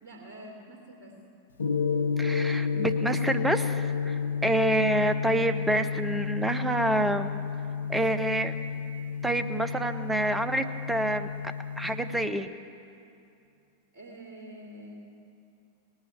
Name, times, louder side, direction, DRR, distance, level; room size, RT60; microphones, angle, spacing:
voice 1, 0.0-1.1 13.9-14.9, right 1 dB, 45° right, -2 dB, 2.6 m, -46 dB
Gong, 1.6-12.3, left 6 dB, 75° left, 0.6 m, -31 dB
voice 2, 2.2-7.3 7.9-8.6 9.2-11.3 11.8-12.5, right 1 dB, 5° right, 8 dB, 0.6 m, -27 dB
19.0 x 6.4 x 8.8 m, 2.5 s
figure-of-eight pair, 90°, 0 cm